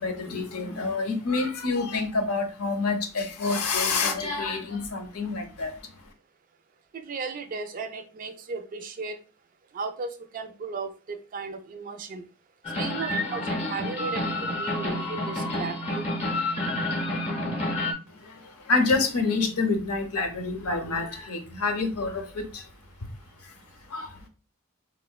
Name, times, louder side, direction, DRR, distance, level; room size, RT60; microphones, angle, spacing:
voice 1, 0.0-5.8 18.1-22.7 23.0-23.1 23.4-23.5 23.9-24.3, left 3 dB, 85° left, 0.6 m, -28 dB
voice 2, 6.9-9.2 9.7-12.3 12.8-16.0, right 4 dB, 40° right, 0.3 m, -35 dB
sound 1, 12.6-17.9, left 1 dB, 30° left, 0.6 m, -29 dB
3.5 x 2.1 x 2.3 m
head